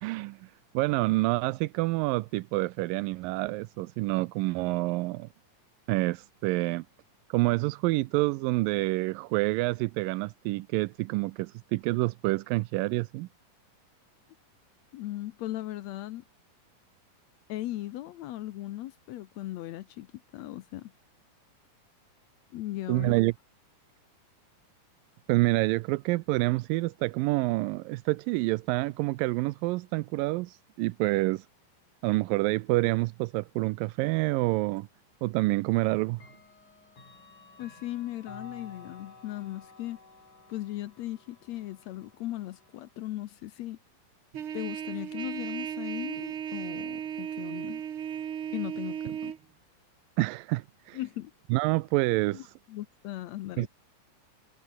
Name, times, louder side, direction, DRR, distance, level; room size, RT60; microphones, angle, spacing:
voice 1, 0.0-5.3 5.9-6.8 7.3-13.3 22.9-23.3 25.3-31.5 32.0-34.9 35.2-36.2 50.2-51.0 51.5-52.5 53.6-53.7, right 21 dB, 85° right, 2.3 m, -27 dB
voice 2, 14.9-16.2 17.5-20.9 22.5-23.1 37.6-40.0 40.5-43.8 44.5-47.8 48.5-49.3 50.9-51.3 52.3-52.4 52.7-53.7, left 15 dB, 75° left, 1.6 m, -38 dB
Clock, 34.8-34.9 36.1-42.9, left 3 dB, 60° left, 9.0 m, -53 dB
Trumpet, 44.3-49.4, right 9 dB, 50° right, 1.8 m, -36 dB
omnidirectional pair, 4.0 m